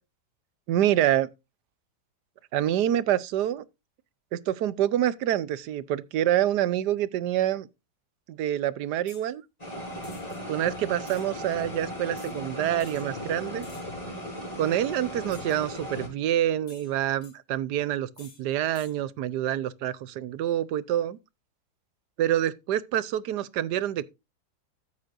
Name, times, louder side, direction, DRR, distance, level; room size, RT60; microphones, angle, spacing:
voice 1, 0.7-1.3 2.5-3.6 4.3-7.7 8.3-9.4 10.5-13.7 14.6-21.2 22.2-24.0, right 12 dB, 70° right, 1.2 m, -26 dB
sound 1, 9.1-9.3 10.0-10.4 11.0-11.3 12.2-12.4 12.8-13.1 13.6-14.0 15.3-15.7 16.7-17.3 18.2-18.4 18.7-19.0, left 4 dB, 55° left, 2.6 m, -52 dB
sound 2, 9.6-16.1, equal, 20° left, 3.9 m, -37 dB
14.0 x 8.4 x 2.5 m
omnidirectional pair, 2.0 m